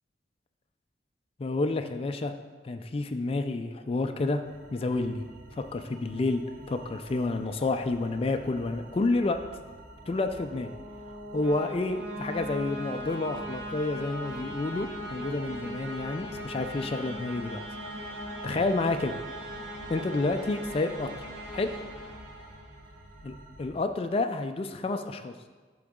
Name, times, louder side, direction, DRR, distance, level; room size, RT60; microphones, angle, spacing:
voice 1, 1.4-2.3 2.6-4.4 4.7-5.2 5.6-6.4 6.7-9.4 10.1-10.7 11.3-17.6 18.4-19.1 19.9-21.7 23.2-23.3 23.6-25.3, left 2 dB, 30° left, 7 dB, 0.3 m, -29 dB
sound 1, 4.4-23.7, right 1 dB, 50° right, 1.0 m, -49 dB
sound 2, 10.0-23.0, equal, 80° right, 1.2 m, -40 dB
11.0 x 3.9 x 3.6 m, 1.4 s
head